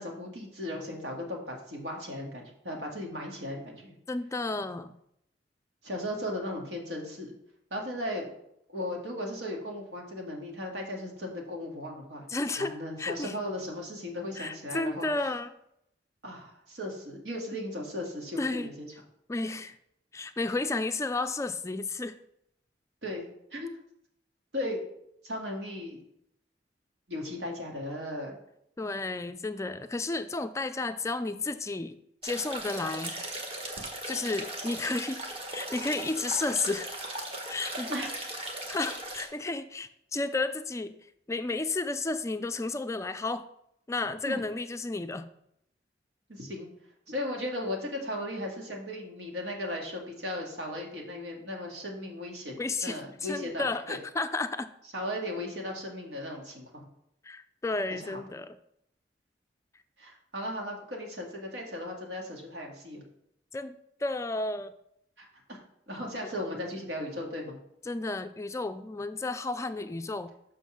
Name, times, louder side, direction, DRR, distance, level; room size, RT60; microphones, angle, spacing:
voice 1, 0.0-3.9 5.8-7.3 7.7-8.3 8.7-12.2 12.6-15.1 16.2-18.9 23.0-23.2 23.5-23.7 24.5-24.8 25.2-26.0 27.1-28.4 37.9-38.1 44.2-44.4 46.3-46.7 47.1-54.0 54.9-56.8 57.9-58.2 60.0-63.0 65.2-65.6 65.9-67.6, left 1 dB, 85° right, 0 dB, 2.0 m, -36 dB
voice 2, 4.1-5.0 12.3-13.3 14.4-15.5 18.4-18.7 19.3-19.8 20.1-22.2 28.8-32.0 32.2-33.1 34.1-35.2 35.5-37.0 37.5-37.9 38.7-40.9 41.3-43.4 43.9-45.3 52.6-54.7 57.2-58.6 63.5-63.8 64.0-64.7 67.9-70.3, left 3 dB, 15° left, 9 dB, 0.3 m, -32 dB
sound 1, 32.2-39.3, right 1 dB, 35° right, 1.4 m, -38 dB
6.0 x 5.5 x 6.3 m, 0.76 s
head